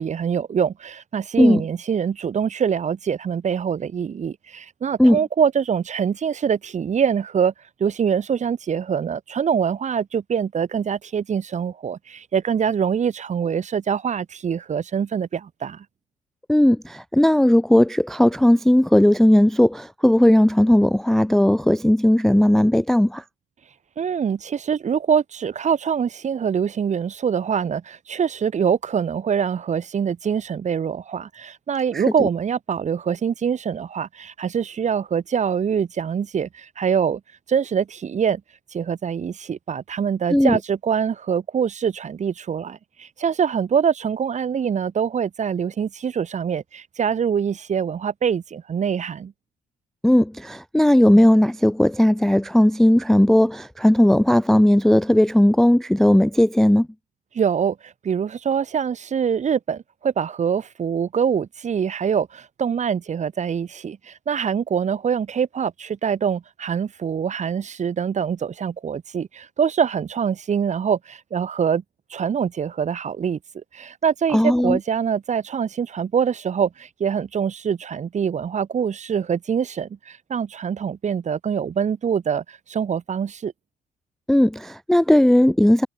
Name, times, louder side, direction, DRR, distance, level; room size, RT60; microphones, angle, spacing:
voice 1, 0.0-7.5 7.8-15.8 24.0-37.2 37.5-38.4 38.7-49.3 57.3-71.8 72.1-83.5, right 7 dB, 40° right, 1.4 m, -24 dB
voice 2, 16.5-23.2 31.9-32.3 40.3-40.6 50.0-56.9 74.3-74.8 84.3-85.9, left 1 dB, ahead, 0.4 m, -17 dB
hypercardioid pair, 65°, 18 cm